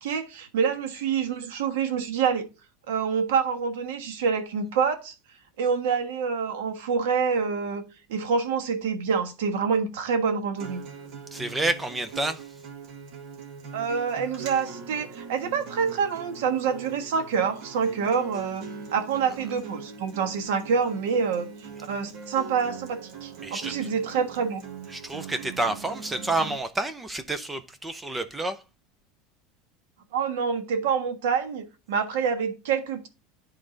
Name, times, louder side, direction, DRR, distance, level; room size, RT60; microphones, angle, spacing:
voice 1, 0.0-2.5 2.9-5.1 5.6-7.8 8.1-10.8 13.7-18.6 18.9-21.5 21.8-24.6 30.1-33.1, right 6 dB, 90° right, 1.4 m, -26 dB
Acoustic guitar, 10.6-26.6, right 5 dB, 50° right, 1.5 m, -41 dB
voice 2, 11.3-12.4 23.4-23.7 24.9-28.6, right 2 dB, 10° right, 0.6 m, -29 dB
11.0 x 3.8 x 3.8 m
supercardioid pair, 150°, 0 cm